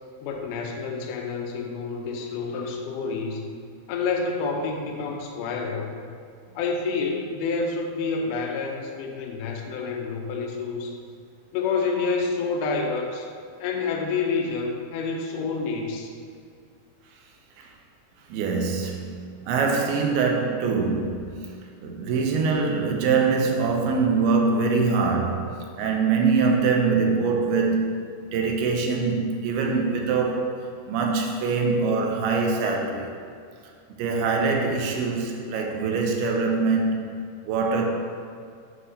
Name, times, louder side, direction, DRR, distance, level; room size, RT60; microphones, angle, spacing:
voice 1, 0.2-3.5 3.9-5.9 6.6-11.0 11.5-13.3 13.6-16.1, left 4 dB, 85° left, 1 dB, 1.9 m, -28 dB
voice 2, 18.3-21.5 21.8-33.1 34.0-37.9, right 4 dB, 90° right, 1 dB, 2.7 m, -24 dB
7.8 x 5.5 x 2.8 m, 2.3 s
omnidirectional pair, 4.5 m